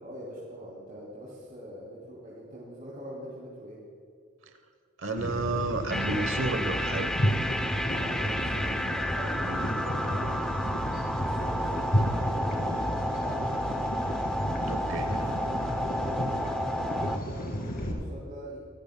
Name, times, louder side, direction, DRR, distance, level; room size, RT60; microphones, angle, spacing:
voice 1, 0.0-3.8 7.9-10.4 11.1-14.0 15.4-18.6, equal, 45° right, -7 dB, 2.7 m, -43 dB
voice 2, 5.0-7.1 9.4-9.7 14.7-15.1, right 3 dB, 80° right, 7 dB, 1.0 m, -32 dB
sound 1, 5.2-17.9, equal, 45° left, 2.2 m, -32 dB
sound 2, 5.9-17.2, equal, 5° left, 0.4 m, -31 dB
24.0 x 14.0 x 2.2 m, 2.2 s
head